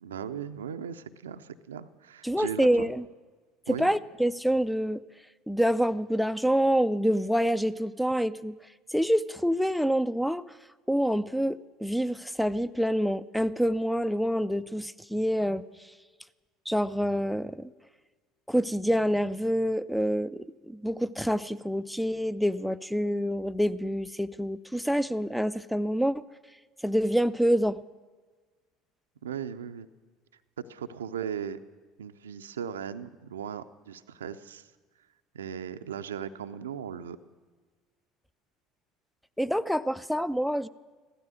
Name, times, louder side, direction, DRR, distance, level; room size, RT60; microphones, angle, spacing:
voice 1, 0.0-2.9 3.7-3.9 29.2-29.9 30.6-31.6 32.0-34.7 35.3-37.2, right 8 dB, 75° right, 11 dB, 0.5 m, -37 dB
voice 2, 2.2-3.0 3.7-5.0 5.5-8.6 8.9-10.4 10.9-15.6 16.7-17.7 18.5-26.2 26.8-27.8 39.4-40.7, equal, ahead, 15 dB, 0.4 m, -27 dB
15.5 x 13.0 x 6.3 m, 1.4 s
figure-of-eight pair, 65°, 0 cm